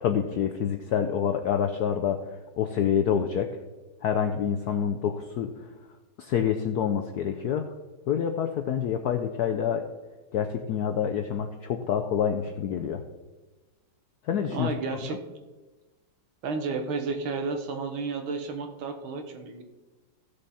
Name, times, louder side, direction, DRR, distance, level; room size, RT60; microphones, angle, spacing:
voice 1, 0.0-2.2 2.5-3.5 4.0-5.5 6.2-7.7 8.1-9.8 10.3-13.0 14.3-14.7, left 8 dB, 75° left, 5 dB, 0.9 m, -27 dB
voice 2, 14.5-15.2 16.4-19.6, right 4 dB, 75° right, 5 dB, 2.0 m, -32 dB
15.0 x 6.6 x 4.2 m, 1.2 s
omnidirectional pair, 2.3 m